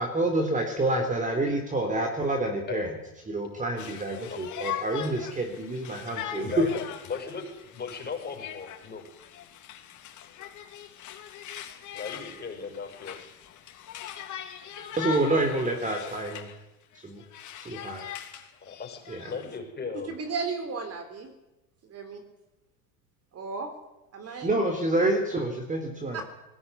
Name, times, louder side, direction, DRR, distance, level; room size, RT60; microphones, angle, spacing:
voice 1, 0.0-3.0 3.3-6.7 15.0-16.5 17.0-17.2 17.6-18.0 19.1-19.3 24.4-26.2, right 2 dB, 20° right, 4 dB, 3.7 m, -28 dB
Conversation, 3.8-16.6 16.9-19.6, left 10 dB, 45° left, 3.3 m, -41 dB
voice 2, 6.4-9.0 11.9-13.2 14.7-14.9 18.6-19.0 19.3-20.1 24.2-24.4, left 5 dB, 25° left, 2 dB, 7.0 m, -37 dB
voice 3, 20.1-21.3 21.9-22.2 23.3-23.7 24.1-24.7 26.1-26.2, right 4 dB, 35° right, 6 dB, 3.9 m, -34 dB
20.0 x 16.5 x 9.8 m, 0.96 s
hypercardioid pair, 85°, 42 cm